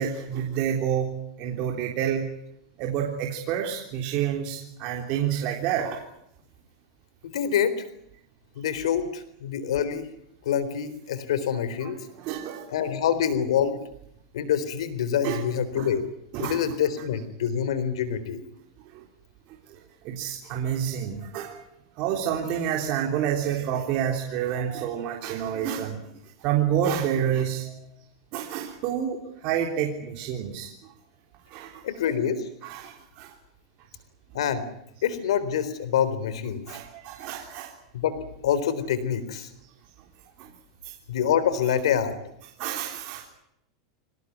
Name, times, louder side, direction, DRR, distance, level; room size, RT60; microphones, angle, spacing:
voice 1, 0.0-2.3 2.8-6.0 11.8-12.7 15.2-15.4 15.8-15.9 16.3-16.7 18.9-19.1 19.7-21.6 22.0-26.0 26.4-27.9 28.3-30.9 31.5-31.8 32.6-33.3 36.7-37.8 40.4-40.5 40.8-41.0 42.6-43.2, right 9 dB, 45° right, 1 dB, 3.6 m, -29 dB
voice 2, 7.2-7.8 8.6-10.1 10.4-12.0 12.7-13.8 14.3-16.1 16.4-18.4 31.8-32.5 34.3-34.7 35.0-36.6 37.9-39.5 41.1-42.1, left 8 dB, 90° left, 13 dB, 3.8 m, -26 dB
25.5 x 19.0 x 9.6 m, 0.79 s
supercardioid pair, 155°, 3 cm